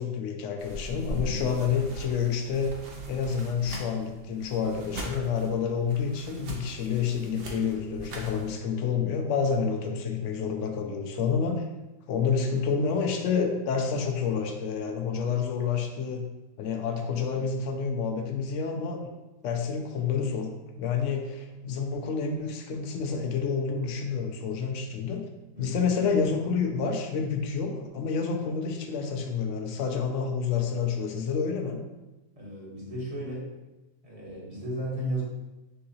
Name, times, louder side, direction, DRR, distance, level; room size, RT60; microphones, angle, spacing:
voice 1, 0.0-2.8 3.1-11.6 12.1-16.3 16.6-19.0 19.4-20.5 20.8-25.2 25.6-31.8, left 6 dB, 70° left, 3 dB, 0.7 m, -28 dB
sound 1, 0.6-8.5, right 1 dB, 60° right, 0.6 m, -41 dB
voice 2, 1.2-1.5 25.5-25.8 32.4-33.5 34.0-35.2, right 1 dB, 25° right, -5 dB, 0.9 m, -34 dB
4.6 x 3.6 x 2.8 m, 1.1 s
omnidirectional pair, 1.8 m